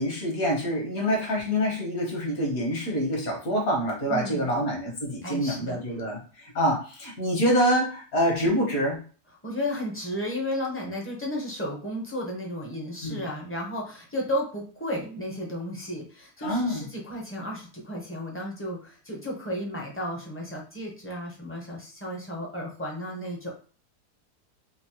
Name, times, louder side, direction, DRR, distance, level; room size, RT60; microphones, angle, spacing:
voice 1, 0.0-9.0 13.0-13.3 16.4-16.8, equal, 65° left, -1 dB, 1.7 m, -26 dB
voice 2, 4.1-4.5 5.2-5.8 9.4-23.5, equal, 15° left, -1 dB, 0.4 m, -33 dB
5.0 x 2.0 x 2.9 m, 0.39 s
omnidirectional pair, 1.7 m